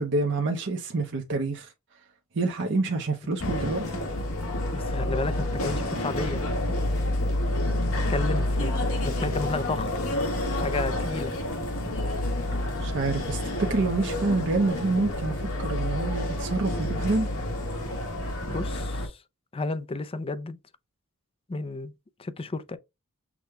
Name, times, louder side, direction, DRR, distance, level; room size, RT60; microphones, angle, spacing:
voice 1, 0.0-1.7 2.3-3.8 12.8-17.3, right 3 dB, 55° right, 0.7 m, -27 dB
sound 1, 3.4-19.1, left 1 dB, 70° left, 1.5 m, -29 dB
voice 2, 4.7-6.4 8.1-8.7 9.0-9.9 10.6-11.3 18.5-19.2 19.5-20.6 21.5-21.9 22.2-22.8, left 3 dB, 25° left, 0.4 m, -32 dB
6.1 x 2.2 x 3.5 m
head